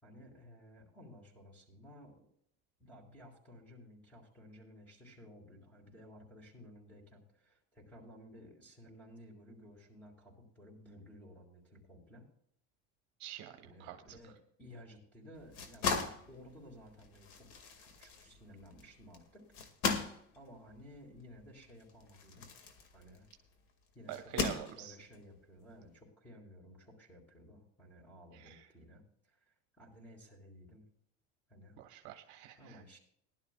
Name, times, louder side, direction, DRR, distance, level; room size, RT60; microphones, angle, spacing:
voice 1, 0.0-2.1 2.8-12.3 13.6-15.9 16.3-17.5 17.8-19.6 20.3-22.5 22.9-23.3 23.9-24.3 24.7-30.8 31.5-31.8 32.6-33.0, equal, 5° left, -1 dB, 4.7 m, -56 dB
voice 2, 13.2-14.2 24.1-25.0 28.3-28.6 31.8-32.8, right 11 dB, 55° right, 6 dB, 1.2 m, -45 dB
sound 1, 15.4-23.5 24.1-25.2, left 5 dB, 80° left, 2.1 m, -39 dB
20.5 x 12.0 x 2.3 m, 0.68 s
cardioid pair, 165°, 35 cm